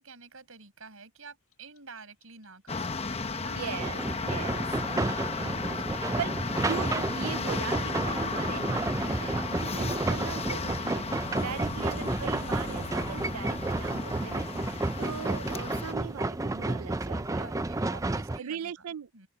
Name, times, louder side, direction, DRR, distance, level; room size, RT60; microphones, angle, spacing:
voice 1, 0.0-3.6 5.0-6.3 17.1-18.8 19.1-19.3, right 4 dB, 65° right, 7.8 m, -50 dB
Clock, 1.5-4.5 4.8-7.8 8.0-16.9, left 1 dB, 75° left, 6.4 m, -47 dB
sound 1, 2.7-15.9, left 4 dB, 25° left, 0.9 m, -35 dB
voice 2, 3.5-4.7 6.2-17.5 18.4-19.2, right 8 dB, 90° right, 0.5 m, -40 dB
sound 2, 3.8-18.4, right 2 dB, 15° right, 0.4 m, -31 dB
open air
head